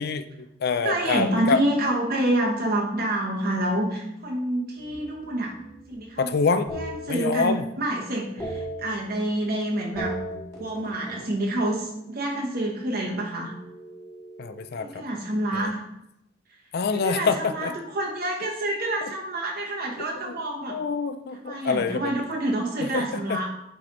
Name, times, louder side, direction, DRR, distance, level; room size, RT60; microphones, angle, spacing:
voice 1, 0.0-1.6 6.2-6.7 7.1-7.7 8.5-8.6 14.4-15.0 15.5-15.7 16.7-17.7 20.3-20.4 20.7-22.1 22.9-23.0 23.3-23.5, left 5 dB, 55° left, 11 dB, 0.4 m, -26 dB
voice 2, 0.8-5.5 5.9-6.3 6.7-10.2 10.6-13.5 14.8-15.8 16.9-20.8 21.3-23.5, right 1 dB, 50° right, -1 dB, 1.1 m, -27 dB
sound 1, 4.8-6.1 6.7-7.8 8.1-9.5 9.8-12.2 13.4-15.1, right 1 dB, 15° left, 2.0 m, -39 dB
8.7 x 3.4 x 3.9 m, 0.81 s
head